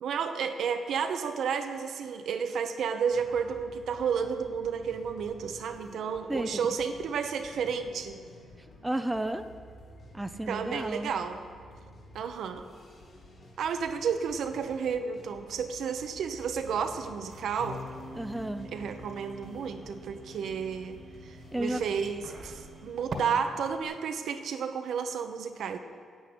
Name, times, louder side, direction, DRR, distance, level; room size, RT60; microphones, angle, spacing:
voice 1, 0.0-8.2 10.5-11.4 12.1-12.7 13.6-17.8 18.7-21.0 21.2-25.8, right 6 dB, 75° right, 7 dB, 0.9 m, -32 dB
sound 1, 3.1-22.8, left 1 dB, 55° left, 2.9 m, -52 dB
voice 2, 8.8-9.4 10.1-11.1 18.2-18.7 21.5-21.8, right 1 dB, 10° right, 9 dB, 0.5 m, -32 dB
sound 2, 16.6-23.2, right 4 dB, 55° right, 1.6 m, -48 dB
Bass guitar, 17.6-23.8, left 1 dB, 75° left, 2.1 m, -48 dB
10.0 x 8.5 x 7.8 m, 2.1 s
cardioid pair, 95°, 0 cm